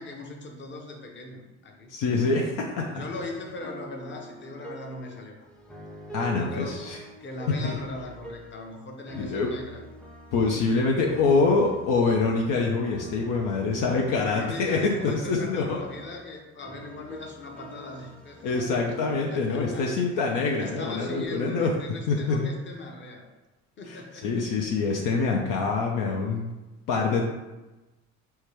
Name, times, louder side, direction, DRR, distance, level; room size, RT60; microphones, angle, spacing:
voice 1, 0.0-1.9 2.9-5.3 6.3-6.9 7.2-9.8 10.5-10.8 11.1-11.2 14.1-19.0 19.3-20.1 20.5-23.2 23.8-24.5, left 2 dB, 30° left, 1 dB, 0.8 m, -39 dB
voice 2, 1.9-3.0 6.1-7.0 7.6-7.7 9.2-9.5 10.3-15.8 18.4-21.7 22.1-22.5 23.9-24.0 24.2-26.5 26.9-27.3, left 4 dB, 60° left, 0 dB, 0.6 m, -25 dB
sound 1, 3.0-8.8 9.1-21.3, right 1 dB, ahead, 0.6 m, -44 dB
4.5 x 2.3 x 3.0 m, 1.1 s
hypercardioid pair, 70°, 38 cm